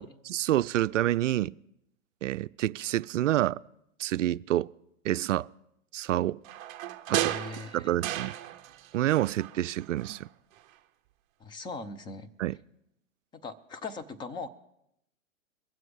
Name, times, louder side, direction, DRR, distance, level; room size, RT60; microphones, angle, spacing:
voice 1, 0.0-1.5 2.2-3.6 4.0-4.7 5.0-5.5 5.9-6.4 7.1-7.3 7.7-8.3 8.9-10.3 12.4-12.5, right 13 dB, 65° right, 0.5 m, -28 dB
sound 1, 6.4-8.9 9.1-10.2 10.6-10.7, right 13 dB, 30° right, 0.9 m, -34 dB
voice 2, 7.1-7.9 11.4-12.3 13.3-14.5, left 4 dB, 10° left, 0.7 m, -40 dB
22.5 x 7.7 x 4.8 m
hypercardioid pair, 125°, 40 cm